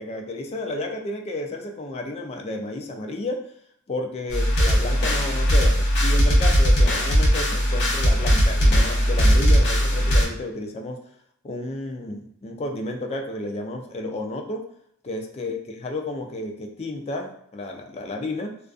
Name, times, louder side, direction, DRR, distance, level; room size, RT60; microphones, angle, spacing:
voice 1, 0.0-3.4 3.9-11.0 11.4-14.6 15.0-18.6, left 2 dB, 30° left, 2 dB, 0.3 m, -32 dB
sound 1, 4.3-10.3, equal, 55° left, 0.7 m, -19 dB
2.4 x 2.3 x 2.3 m, 0.68 s
head